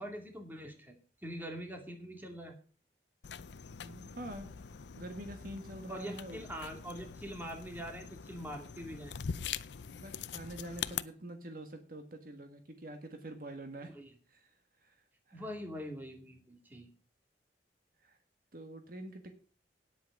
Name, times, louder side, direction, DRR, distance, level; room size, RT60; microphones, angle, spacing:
voice 1, 0.0-2.5 5.9-9.1 13.9-14.1 15.3-16.9, equal, 10° right, 3 dB, 2.4 m, -44 dB
sound 1, 3.2-11.0, left 7 dB, 75° left, 0.6 m, -43 dB
voice 2, 3.8-4.5 5.0-6.4 10.0-13.9 14.3-14.5 14.8-15.5 18.0-18.2 18.5-19.3, right 1 dB, 50° right, 7 dB, 1.5 m, -46 dB
9.5 x 8.1 x 7.1 m, 0.40 s
head